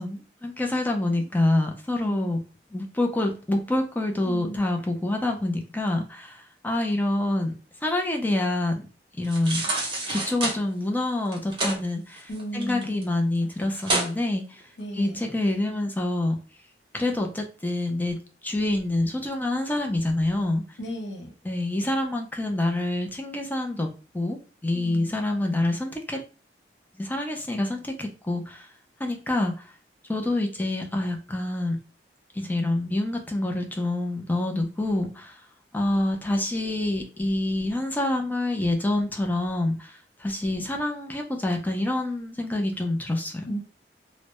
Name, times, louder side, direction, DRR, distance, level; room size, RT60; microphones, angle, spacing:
voice 1, 0.0-2.4 2.7-7.5 7.8-8.9 9.2-9.7 10.1-14.6 14.9-16.4 16.9-20.6 21.5-23.9 24.1-26.2 27.0-28.7 29.0-29.6 30.1-31.8 32.4-35.4 35.7-43.4, left 1 dB, 10° left, 3 dB, 0.3 m, -27 dB
voice 2, 2.0-2.3 4.2-4.6 12.3-13.1 14.8-15.3 20.8-21.3 24.7-25.1 43.5-43.6, equal, 85° left, 1 dB, 0.6 m, -35 dB
sound 1, 9.2-10.6 11.3-11.8 12.2-13.0 13.3-13.4 13.8-14.1 14.6-14.7, right 2 dB, 30° right, 0.6 m, -28 dB
2.2 x 2.0 x 2.8 m, 0.36 s
head